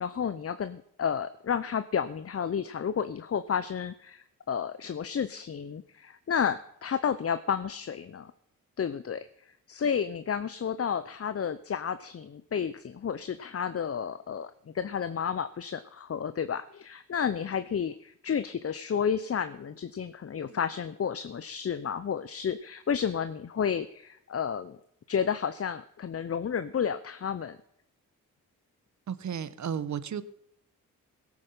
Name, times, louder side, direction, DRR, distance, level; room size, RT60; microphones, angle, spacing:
voice 1, 0.0-8.3 8.8-9.3 9.7-24.8 25.1-27.6, left 7 dB, 40° left, 13 dB, 0.8 m, -31 dB
voice 2, 29.1-30.2, right 8 dB, 50° right, 15 dB, 1.1 m, -33 dB
17.0 x 8.8 x 5.7 m, 0.72 s
supercardioid pair, 60°, 36 cm